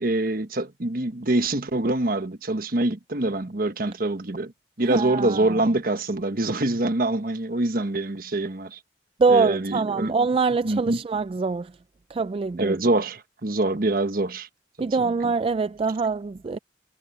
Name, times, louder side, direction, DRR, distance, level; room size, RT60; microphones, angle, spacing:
voice 1, 0.0-4.5 4.8-8.8 9.3-10.1 10.6-11.0 12.6-14.5 14.8-14.9, right 2 dB, 55° right, 1.3 m, -25 dB
voice 2, 4.9-5.6 9.2-11.7 12.1-12.8 14.8-16.6, right 4 dB, 30° right, 0.3 m, -24 dB
head